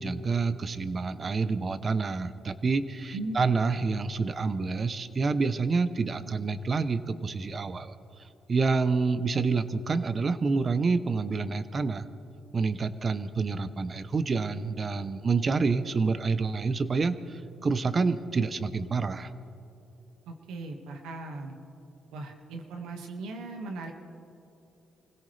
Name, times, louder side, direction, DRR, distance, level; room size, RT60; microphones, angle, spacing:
voice 1, 0.0-7.9 8.5-12.0 12.5-19.3, right 4 dB, 35° right, 13 dB, 0.8 m, -28 dB
voice 2, 20.3-21.6 22.1-23.9, right 2 dB, 90° right, 3 dB, 1.7 m, -38 dB
25.0 x 16.5 x 3.4 m, 2.8 s
cardioid pair, 90°, 0 cm